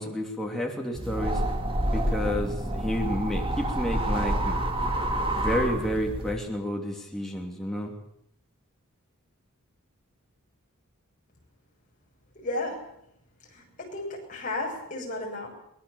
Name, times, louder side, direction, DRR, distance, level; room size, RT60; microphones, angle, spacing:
voice 1, 0.0-1.4 1.9-4.6 5.3-7.9, equal, ahead, -1 dB, 3.0 m, -30 dB
sound 1, 0.9-6.3, right 1 dB, 25° right, 2.6 m, -28 dB
voice 2, 12.4-12.9 13.5-15.5, left 2 dB, 35° left, -1 dB, 7.7 m, -33 dB
23.5 x 20.0 x 7.2 m, 0.73 s
head